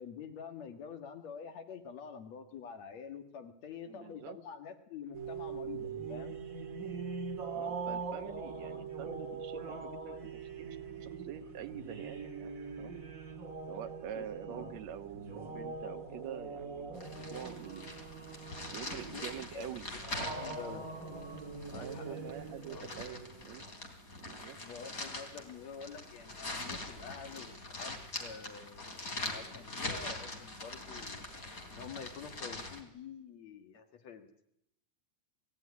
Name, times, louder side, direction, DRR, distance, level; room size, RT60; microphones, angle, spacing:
voice 1, 0.0-6.4 14.1-14.7 18.9-20.9 21.7-22.4 22.7-23.2 24.6-31.2 31.7-34.4, left 6 dB, 60° left, 6 dB, 2.9 m, -47 dB
voice 2, 3.9-4.4 7.5-12.5 12.8-12.9 13.7-18.0 18.7-19.9 21.7-23.7 24.2-24.6, right 10 dB, 65° right, 7 dB, 2.3 m, -46 dB
sound 1, 5.1-23.7, right 4 dB, 30° right, 2.3 m, -42 dB
sound 2, 16.9-32.8, left 2 dB, 25° left, 3.7 m, -43 dB
27.5 x 16.0 x 9.6 m, 0.81 s
omnidirectional pair, 3.7 m